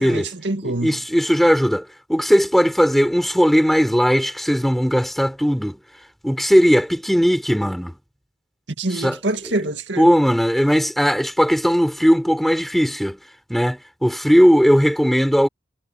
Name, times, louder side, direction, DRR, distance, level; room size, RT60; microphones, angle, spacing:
voice 1, 0.0-1.0 8.8-10.1, right 2 dB, 85° right, 2.0 m, -25 dB
voice 2, 0.6-5.8 6.2-7.9 9.0-9.2 10.0-13.2 13.5-15.5, equal, ahead, 4.0 m, -18 dB
head